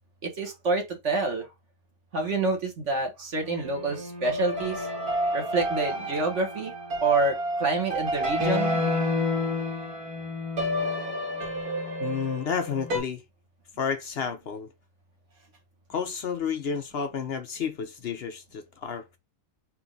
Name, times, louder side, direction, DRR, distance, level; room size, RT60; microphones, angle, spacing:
voice 1, 0.2-1.5 2.1-4.9 5.3-6.7 7.0-8.8, right 3 dB, 50° right, 1.6 m, -27 dB
sound 1, 3.4-13.0, left 1 dB, 70° right, 2.3 m, -29 dB
voice 2, 12.0-13.2 13.8-14.7 15.9-19.2, left 7 dB, 60° left, 0.6 m, -31 dB
4.4 x 3.1 x 3.8 m
omnidirectional pair, 1.6 m